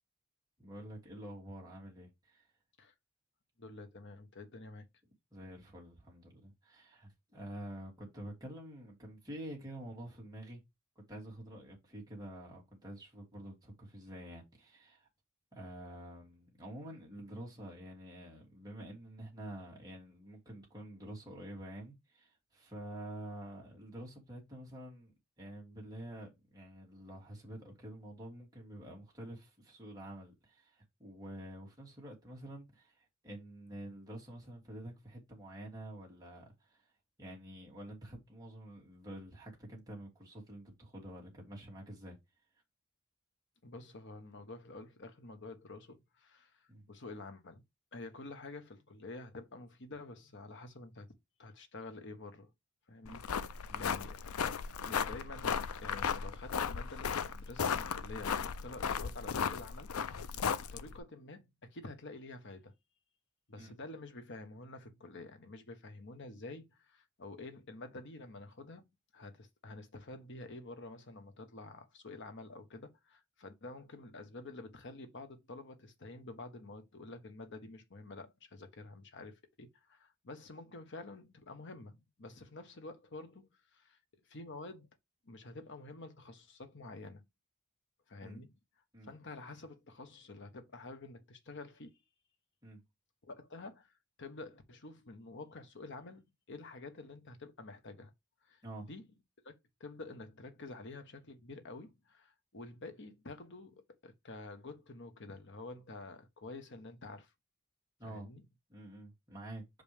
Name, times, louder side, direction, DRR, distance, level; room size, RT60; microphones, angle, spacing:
voice 1, 0.6-2.5 5.3-10.6 11.0-15.1 15.5-36.8 37.2-42.2 46.7-46.9 53.0-53.1 53.7-53.9 60.3-60.5 63.5-63.7 88.2-88.4 88.9-89.1 92.6-92.8 98.6-98.9 108.0-108.3 108.7-109.6, right 1 dB, 20° right, 2.8 m, -48 dB
voice 2, 3.6-4.8 43.6-47.6 47.9-51.1 51.4-52.5 52.9-54.3 54.6-60.3 60.6-62.7 63.5-68.8 69.1-84.0 84.3-84.9 85.2-87.2 88.1-88.5 89.1-92.0 93.2-98.1 98.4-98.6 98.9-99.1 99.4-99.5 99.8-107.3 108.0-108.4, left 2 dB, 60° left, 1.2 m, -49 dB
sound 1, 53.1-61.0, left 6 dB, 85° left, 0.5 m, -36 dB
6.0 x 5.3 x 3.5 m
head